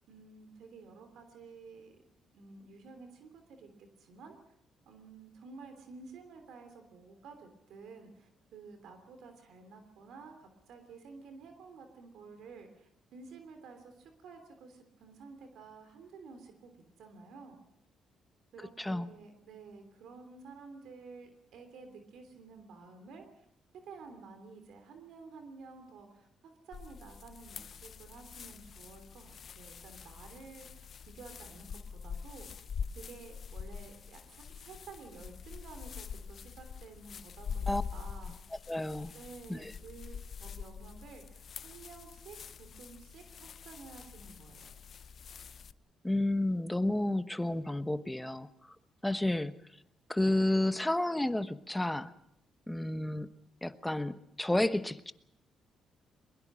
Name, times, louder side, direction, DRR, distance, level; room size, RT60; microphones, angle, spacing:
voice 1, 0.1-2.0 2.3-4.4 4.8-17.6 18.5-23.4 23.8-32.7 32.9-38.4 39.1-44.8, right 4 dB, 75° right, 7 dB, 3.2 m, -52 dB
Something moving through the bushes, 26.7-45.7, left 6 dB, 55° left, 0.7 m, -44 dB
voice 2, 38.7-39.1 39.5-39.7 46.0-48.5 49.0-49.5 50.1-52.1 52.7-53.3 53.6-55.1, left 1 dB, 10° left, 11 dB, 1.1 m, -31 dB
21.5 x 21.0 x 6.3 m, 0.79 s
cardioid pair, 90°, 0 cm